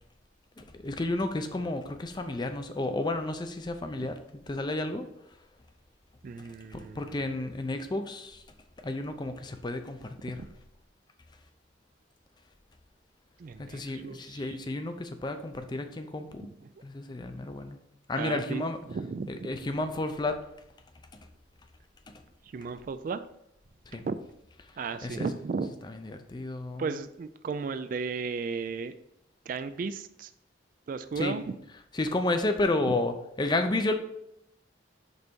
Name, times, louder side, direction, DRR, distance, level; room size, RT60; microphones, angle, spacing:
voice 1, 0.6-5.1 6.7-8.4 8.8-10.4 13.6-16.5 16.8-17.8 18.1-18.8 19.3-20.4 21.1-21.2 22.1-22.2 23.9-24.0 25.0-25.3 26.0-26.9 31.2-31.4 31.9-33.9, left 2 dB, 25° left, 7 dB, 0.5 m, -31 dB
voice 2, 6.2-7.2 10.4-10.5 13.4-14.6 16.6-16.7 18.1-19.5 22.4-23.2 24.0-24.2 24.8-25.7 26.8-28.9 29.5-30.3 30.9-31.4 32.9-33.0, right 5 dB, 45° right, 12 dB, 0.3 m, -35 dB
5.4 x 4.0 x 4.5 m, 0.77 s
head